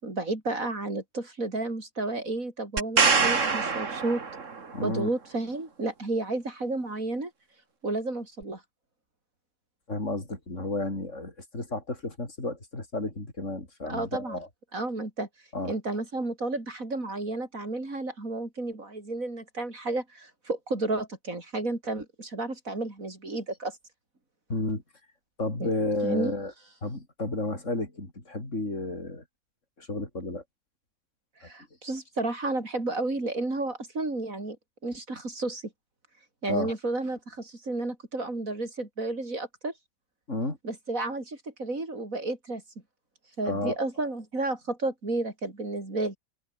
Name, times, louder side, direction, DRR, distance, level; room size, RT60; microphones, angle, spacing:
voice 1, 0.0-4.2 4.8-7.3 7.8-8.6 13.9-14.4 14.7-15.3 15.6-23.8 25.6-25.7 26.0-26.3 31.4-34.6 34.8-35.6 36.4-39.7 40.6-42.6 43.4-46.2, right 2 dB, 85° right, 5.5 m, -32 dB
sound 1, 2.8-4.7 8.4-8.5, right 5 dB, 65° right, 2.4 m, -25 dB
voice 2, 4.7-5.1 9.9-14.5 15.5-15.8 24.5-24.8 25.4-26.5 26.8-29.2 29.8-30.4 36.5-36.7 40.3-40.6 43.4-43.8, left 2 dB, 65° left, 6.0 m, -32 dB
omnidirectional pair, 1.4 m